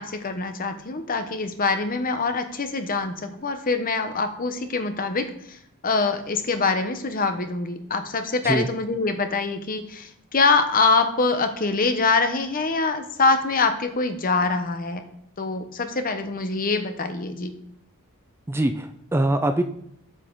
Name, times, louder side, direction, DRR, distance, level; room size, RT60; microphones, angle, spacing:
voice 1, 0.0-5.6 5.8-15.0 15.4-17.5, left 4 dB, 40° left, 8 dB, 0.9 m, -24 dB
voice 2, 18.5-19.6, right 1 dB, 10° right, 7 dB, 0.4 m, -23 dB
8.2 x 7.5 x 3.9 m, 0.73 s
head